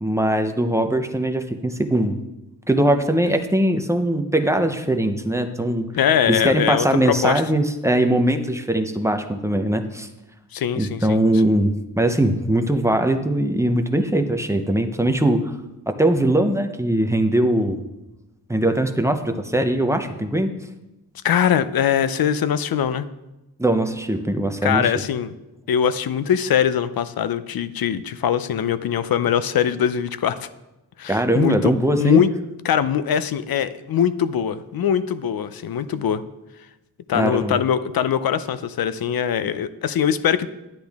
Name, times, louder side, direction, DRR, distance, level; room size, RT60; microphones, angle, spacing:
voice 1, 0.0-2.2 2.7-5.9 6.3-10.1 10.8-15.5 15.9-17.8 18.5-20.5 23.6-24.8 31.1-32.2 37.1-37.6, right 1 dB, 5° right, 6 dB, 0.6 m, -21 dB
voice 2, 5.9-7.4 10.5-11.2 21.2-23.1 24.6-25.3 25.7-30.5 31.0-32.3 32.6-36.2 37.1-40.5, left 8 dB, 60° left, 14 dB, 0.6 m, -22 dB
10.5 x 9.8 x 3.5 m, 0.99 s
wide cardioid pair, 150°, 40 cm